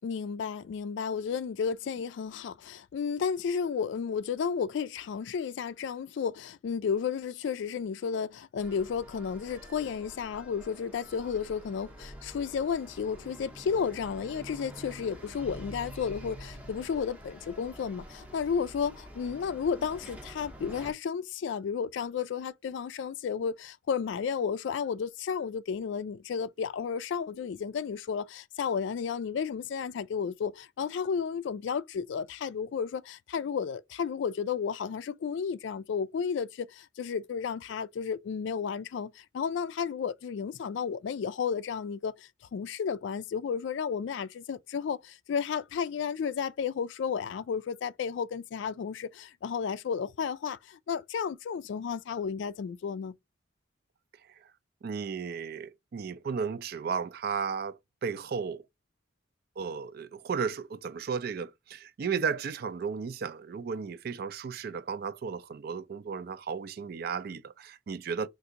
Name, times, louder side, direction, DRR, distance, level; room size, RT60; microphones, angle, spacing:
voice 1, 0.0-53.1, left 6 dB, 65° left, 0.3 m, -32 dB
sound 1, 8.6-20.9, equal, 10° right, 0.6 m, -47 dB
voice 2, 54.8-58.6 59.6-68.3, right 6 dB, 50° right, 0.3 m, -34 dB
2.8 x 2.5 x 3.6 m
head